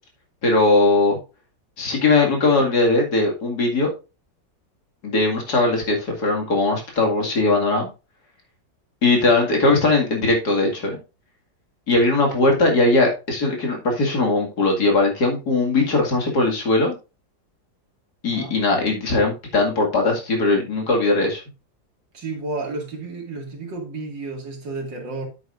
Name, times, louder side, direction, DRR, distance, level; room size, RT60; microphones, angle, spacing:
voice 1, 0.4-1.2 1.8-3.9 5.0-7.9 9.0-11.0 11.9-17.0 18.2-21.4, left 2 dB, 55° left, 2.7 m, -19 dB
voice 2, 22.1-25.3, right 3 dB, 75° right, 2.9 m, -31 dB
9.2 x 8.5 x 2.5 m
omnidirectional pair, 2.0 m